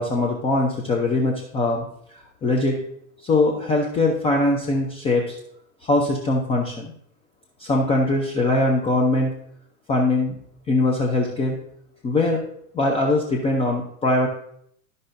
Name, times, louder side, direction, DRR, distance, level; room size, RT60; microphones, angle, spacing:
voice 1, 0.0-1.9 2.1-2.8 3.2-5.4 5.8-6.9 7.6-9.3 9.9-10.4 10.7-11.6 12.0-12.4 12.7-14.3, left 2 dB, 10° left, 0 dB, 0.6 m, -21 dB
13.5 x 5.4 x 2.6 m, 0.69 s
supercardioid pair, 140°, 47 cm